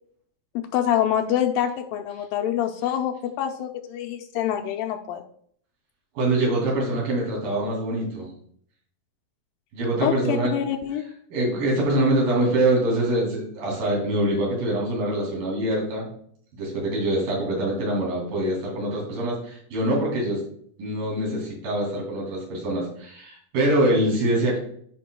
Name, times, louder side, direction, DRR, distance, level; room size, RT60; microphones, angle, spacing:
voice 1, 0.7-5.2 10.0-11.1, left 10 dB, 80° left, 4 dB, 2.2 m, -26 dB
voice 2, 6.1-8.3 9.7-10.5 11.3-16.1 16.5-20.4 20.8-24.6, right 1 dB, 70° right, -3 dB, 4.3 m, -24 dB
12.0 x 5.2 x 2.2 m, 0.62 s
omnidirectional pair, 4.2 m